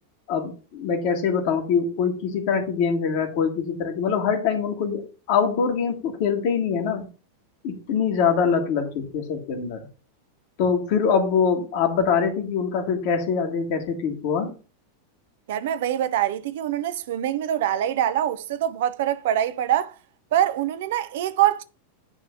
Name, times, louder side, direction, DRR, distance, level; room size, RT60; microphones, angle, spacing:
voice 1, 0.3-7.1 7.6-9.9 10.6-14.5, left 6 dB, 50° left, 1.9 m, -24 dB
voice 2, 15.5-19.9 20.3-21.6, right 11 dB, 55° right, 0.6 m, -24 dB
9.8 x 3.4 x 7.0 m
figure-of-eight pair, 90°, 0 cm